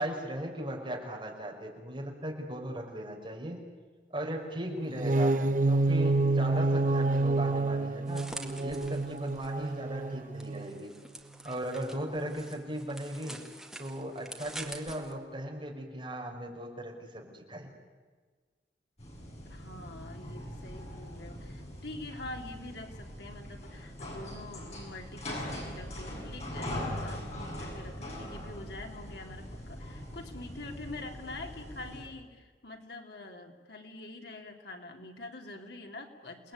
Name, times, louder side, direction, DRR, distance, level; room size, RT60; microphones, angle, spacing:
voice 1, 0.0-3.6 4.1-10.9 11.4-13.4 13.8-17.7, right 1 dB, 30° right, 0 dB, 5.3 m, -37 dB
sound 1, 4.9-10.8, right 2 dB, 45° right, 0.8 m, -28 dB
sound 2, 8.1-9.7 10.4-15.1, right 1 dB, ahead, 2.1 m, -46 dB
sound 3, 19.0-32.0, left 1 dB, 40° left, 7.3 m, -41 dB
voice 2, 19.4-36.5, left 2 dB, 65° left, 2 dB, 3.1 m, -45 dB
29.0 x 19.5 x 9.7 m, 1.4 s
head